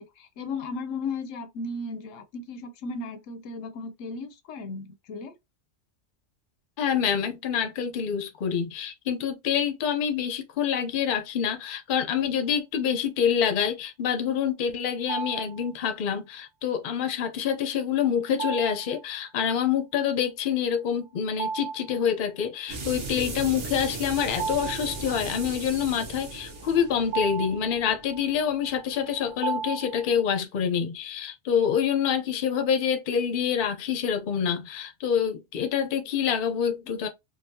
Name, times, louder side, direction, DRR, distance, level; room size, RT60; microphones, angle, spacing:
voice 1, 0.0-5.4, left 3 dB, 80° left, 1.0 m, -35 dB
voice 2, 6.8-37.1, left 8 dB, 50° left, 0.7 m, -26 dB
sound 1, 15.1-15.7 18.4-19.0 21.3-22.0 22.4-22.5 23.9-25.5 26.4-30.3, right 6 dB, 80° right, 1.0 m, -35 dB
sound 2, 22.7-29.2, right 3 dB, 55° right, 1.2 m, -37 dB
3.9 x 2.3 x 2.6 m
omnidirectional pair, 1.3 m